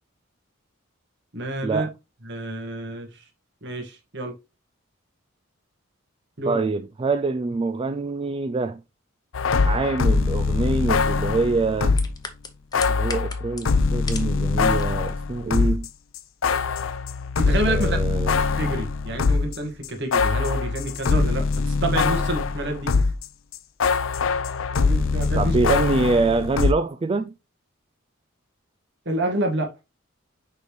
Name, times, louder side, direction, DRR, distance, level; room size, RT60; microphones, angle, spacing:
voice 1, 1.3-1.9 2.3-3.1 3.6-4.3 6.4-6.6 17.4-18.0 18.6-22.9 24.7-25.6 29.1-29.7, right 1 dB, 60° right, 1.8 m, -28 dB
voice 2, 6.5-8.8 9.7-12.0 12.9-15.9 17.7-18.4 25.4-27.3, right 3 dB, 25° right, 0.3 m, -25 dB
sound 1, 9.3-12.2 12.7-15.9 16.1-23.3 23.5-26.7, left 4 dB, 80° left, 0.5 m, -23 dB
sound 2, 12.0-14.4 14.7-15.1 15.5-15.6, left 4 dB, 20° left, 0.9 m, -35 dB
6.6 x 5.2 x 3.2 m
head